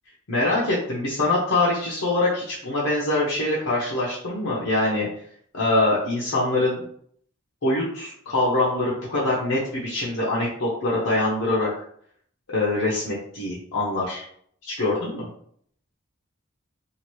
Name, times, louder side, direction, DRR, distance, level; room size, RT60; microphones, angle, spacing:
voice 1, 0.3-5.1 5.5-6.8 7.6-11.7 12.5-14.2 14.6-15.3, left 2 dB, 80° left, -6 dB, 0.8 m, -24 dB
2.8 x 2.5 x 3.0 m, 0.64 s
head